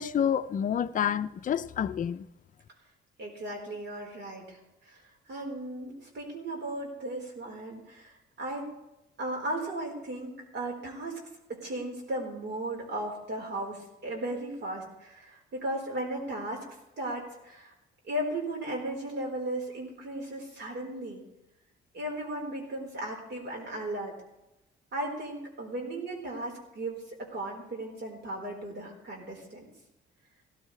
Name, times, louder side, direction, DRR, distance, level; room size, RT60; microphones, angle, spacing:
voice 1, 0.0-2.3, left 8 dB, 40° left, 0.5 m, -28 dB
voice 2, 3.2-4.6 4.9-5.0 5.3-8.7 9.2-11.2 11.5-16.6 17.0-17.7 18.1-21.2 21.9-24.2 24.9-29.6, right 1 dB, 60° right, 4.4 m, -36 dB
16.5 x 13.5 x 3.3 m
cardioid pair, 90°, 20 cm